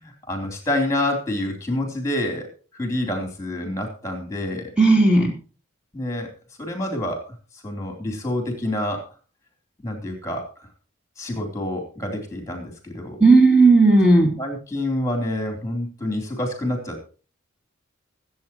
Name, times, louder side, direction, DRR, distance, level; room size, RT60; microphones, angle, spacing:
voice 1, 0.0-4.7 5.9-6.3 6.6-7.3 7.5-9.1 9.8-10.5 11.2-13.2 14.4-17.1, left 1 dB, 15° left, 3 dB, 3.5 m, -27 dB
voice 2, 4.8-5.3 13.2-14.3, right 3 dB, 5° right, -2 dB, 3.1 m, -14 dB
24.0 x 8.5 x 3.0 m, 0.36 s
head